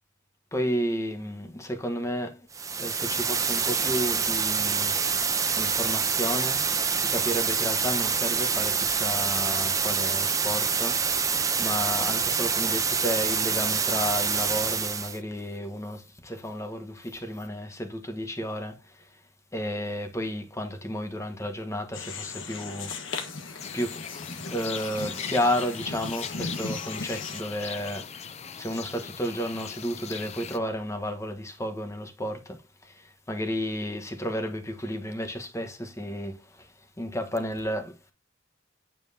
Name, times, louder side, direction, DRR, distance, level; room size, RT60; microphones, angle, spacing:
voice 1, 0.5-2.4 2.8-5.0 5.6-6.6 7.0-11.2 11.6-18.8 19.5-22.9 23.7-24.0 24.5-28.3 28.6-32.9 33.3-36.7 37.0-38.1, equal, 15° left, 1.1 m, -32 dB
sound 1, 2.5-15.2, right 6 dB, 15° right, 0.6 m, -26 dB
sound 2, 21.9-27.4, left 4 dB, 70° left, 1.3 m, -37 dB
sound 3, 23.6-30.6, left 7 dB, 35° left, 0.5 m, -39 dB
8.9 x 5.4 x 2.7 m
head